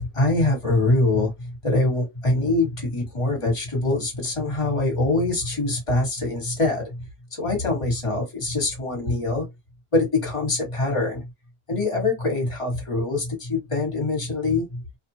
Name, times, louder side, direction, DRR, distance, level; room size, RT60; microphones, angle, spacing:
voice 1, 0.0-7.0 7.3-9.4 9.9-11.2 11.7-14.8, left 2 dB, 25° left, 1.3 m, -24 dB
2.7 x 2.3 x 2.7 m
omnidirectional pair, 1.5 m